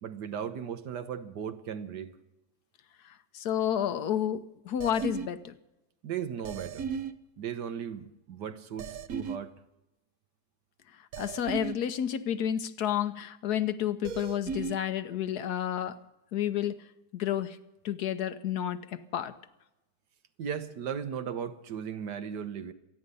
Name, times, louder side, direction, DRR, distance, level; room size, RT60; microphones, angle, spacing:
voice 1, 0.0-2.1 6.0-6.9 7.4-9.5 20.4-22.7, right 8 dB, 80° right, 1.7 m, -36 dB
voice 2, 3.0-5.5 11.2-16.0 16.3-16.8 17.1-17.6 17.8-19.3, left 10 dB, 70° left, 1.3 m, -30 dB
sound 1, 4.8-5.3 6.4-7.1 8.8-9.4 11.1-11.7 14.0-14.8, right 6 dB, 60° right, 1.2 m, -35 dB
26.5 x 10.0 x 5.4 m
omnidirectional pair, 1.8 m